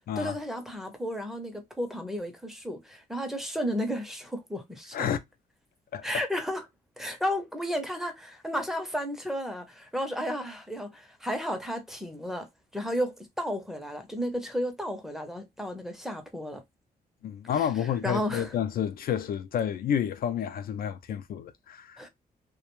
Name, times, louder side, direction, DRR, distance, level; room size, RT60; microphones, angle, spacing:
voice 1, 0.2-5.1 6.0-6.7 7.0-16.6 17.5-17.7 18.0-18.5 22.0-22.1, equal, ahead, 0.6 m, -33 dB
voice 2, 17.2-22.1, left 9 dB, 65° left, 0.4 m, -30 dB
2.3 x 2.2 x 3.0 m
cardioid pair, 110°, 16 cm